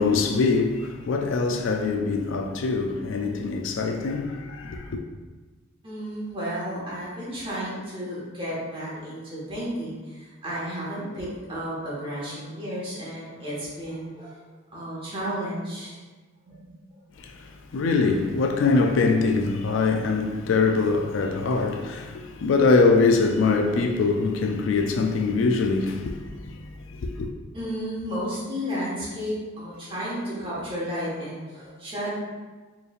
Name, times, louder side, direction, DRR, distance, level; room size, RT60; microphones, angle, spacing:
voice 1, 0.0-5.0 17.2-27.3, left 4 dB, 65° left, 0.3 m, -23 dB
voice 2, 5.8-14.4 14.7-16.0 16.5-16.6 27.5-32.1, equal, 25° right, 1.3 m, -32 dB
4.6 x 3.2 x 2.4 m
head